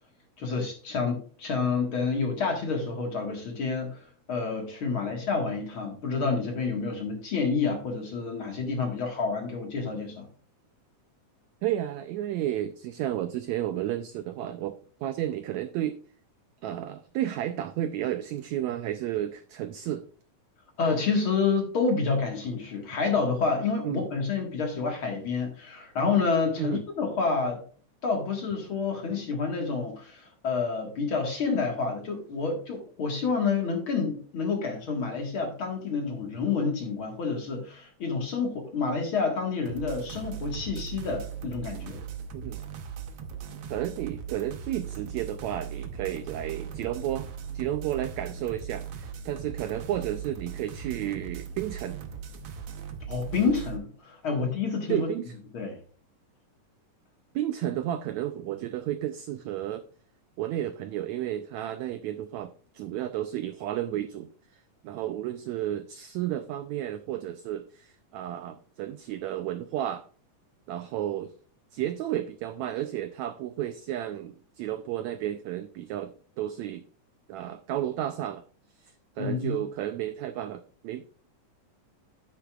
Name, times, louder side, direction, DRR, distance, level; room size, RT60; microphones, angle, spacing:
voice 1, 0.4-10.3 20.8-27.6 28.0-42.0 53.1-55.1 55.5-55.8 79.2-79.6, left 4 dB, 45° left, 2 dB, 2.1 m, -29 dB
voice 2, 11.6-14.8 15.0-16.0 16.6-20.1 23.8-24.1 26.6-26.8 42.3-42.6 43.7-47.3 47.5-52.0 54.3-54.5 54.9-55.3 57.3-59.8 60.4-70.1 70.7-71.3 71.7-76.8 77.3-78.4 78.7-81.0, right 12 dB, 80° right, 10 dB, 1.6 m, -32 dB
sound 1, 39.7-53.8, right 7 dB, 65° right, 1.5 m, -39 dB
10.0 x 9.4 x 2.4 m, 0.42 s
omnidirectional pair, 3.8 m